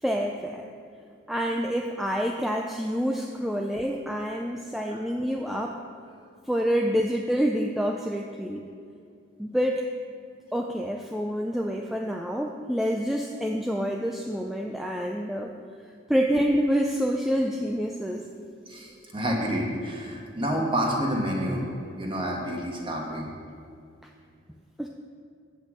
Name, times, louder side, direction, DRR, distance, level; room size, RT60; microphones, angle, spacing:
voice 1, 0.0-0.7 1.3-5.8 6.5-8.6 9.4-9.9 10.5-15.5 16.1-18.3 24.8-24.9, equal, ahead, 1 dB, 0.3 m, -27 dB
voice 2, 18.7-23.3, equal, 25° right, -1 dB, 1.3 m, -29 dB
8.1 x 5.5 x 7.4 m, 2.4 s
head